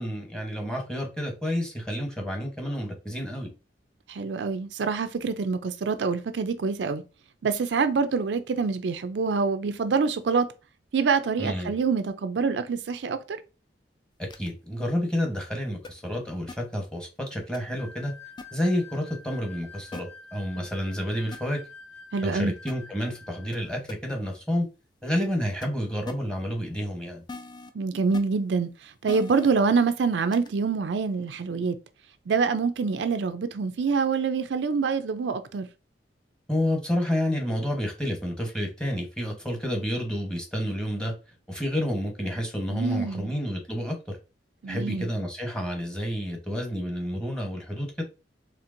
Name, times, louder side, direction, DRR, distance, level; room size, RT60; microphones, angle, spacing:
voice 1, 0.0-3.5 11.4-11.7 14.2-18.1 18.5-21.6 22.2-24.6 25.0-27.2 36.5-41.1 41.5-44.2 44.7-48.0, equal, 5° left, 1.0 m, -30 dB
voice 2, 4.1-7.0 7.4-10.5 10.9-13.4 22.1-22.5 27.7-31.8 32.3-35.7 42.7-43.3 44.6-45.1, right 5 dB, 75° right, 0.4 m, -26 dB
sound 1, 14.3-14.5 15.8-15.9 16.5-16.6 17.5-17.6 18.4-18.5 19.9-20.0 21.3-21.4 22.7-22.8 23.5-23.6 23.9-24.0 25.6-25.7 26.1-26.2 27.3-27.7 28.1-28.2 29.1-29.5 30.3-30.5, left 3 dB, 25° left, 0.4 m, -39 dB
sound 2, 17.7-23.8, left 3 dB, 75° left, 1.4 m, -47 dB
4.4 x 3.3 x 2.5 m
head